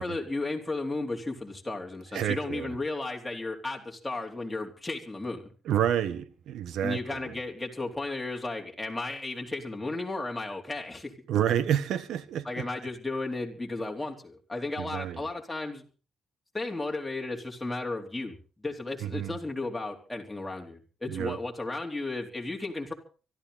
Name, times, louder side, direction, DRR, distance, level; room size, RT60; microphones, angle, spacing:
voice 1, 0.0-5.5 6.8-11.1 12.4-15.8 16.5-22.9, left 2 dB, 10° left, 4.1 m, -34 dB
voice 2, 2.1-2.7 5.7-7.0 11.3-12.6 14.8-15.2 19.0-19.3 21.1-21.4, right 10 dB, 75° right, 1.5 m, -29 dB
24.0 x 13.5 x 4.1 m
cardioid pair, 90°, 0 cm